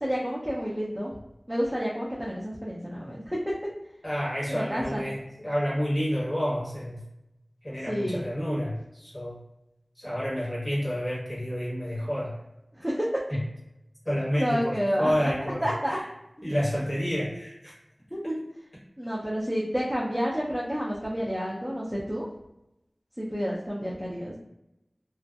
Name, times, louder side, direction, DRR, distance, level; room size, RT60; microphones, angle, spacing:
voice 1, 0.0-1.2 1.5-3.4 4.5-5.0 7.9-8.2 12.7-13.2 14.3-15.3 15.6-16.0 18.1-18.4 19.0-22.3 23.2-24.3, equal, 5° right, -7 dB, 0.5 m, -29 dB
voice 2, 4.0-7.0 7.6-9.4 10.0-12.3 13.3-13.4 14.0-16.0 16.4-17.7, equal, 25° left, -8 dB, 1.3 m, -29 dB
2.5 x 2.1 x 2.3 m, 0.88 s
wide cardioid pair, 50°, 0 cm